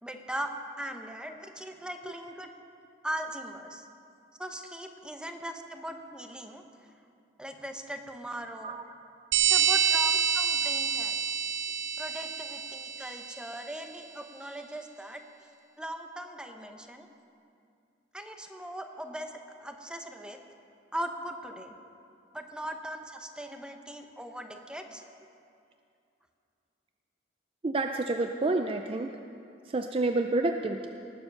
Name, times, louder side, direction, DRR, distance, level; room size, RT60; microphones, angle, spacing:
voice 1, 0.0-2.5 3.0-3.9 4.4-6.6 7.4-8.8 9.5-11.2 12.0-15.2 15.8-17.1 18.1-20.4 20.9-21.8 22.3-25.0, right 1 dB, 5° right, 5 dB, 0.8 m, -39 dB
sound 1, 9.3-13.6, right 8 dB, 90° right, 0.8 m, -27 dB
voice 2, 27.6-29.1 29.7-30.9, right 2 dB, 30° right, 5 dB, 0.4 m, -28 dB
19.0 x 7.1 x 6.6 m, 2.5 s
head